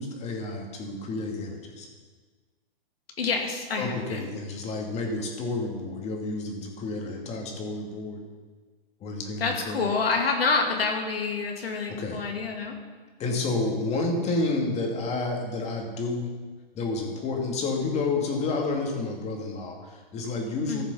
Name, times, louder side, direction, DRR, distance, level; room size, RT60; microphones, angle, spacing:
voice 1, 0.0-1.9 3.8-8.2 9.0-9.8 11.9-12.2 13.2-16.3 16.7-20.8, left 3 dB, 20° left, 1 dB, 2.2 m, -30 dB
voice 2, 3.2-4.3 9.4-12.8 20.7-20.8, left 4 dB, 75° left, 2 dB, 2.6 m, -27 dB
14.0 x 7.2 x 5.5 m, 1.4 s
hypercardioid pair, 130°, 30 cm